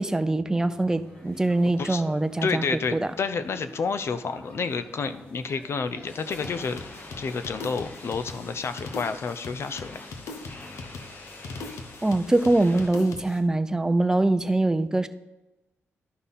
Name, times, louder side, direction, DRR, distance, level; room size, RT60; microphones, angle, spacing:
voice 1, 0.0-2.6 2.9-3.1 12.0-15.1, right 2 dB, 10° right, 11 dB, 0.5 m, -23 dB
sound 1, 0.5-6.7, equal, 25° left, 2.3 m, -48 dB
voice 2, 2.4-6.8 7.2-10.0, left 5 dB, 60° left, 11 dB, 0.6 m, -30 dB
sound 2, 6.1-12.9, left 2 dB, 40° left, 1.2 m, -44 dB
sound 3, 6.3-13.4, left 3 dB, 90° left, 1.0 m, -41 dB
11.5 x 5.6 x 4.1 m, 1.0 s
cardioid pair, 85°, 5 cm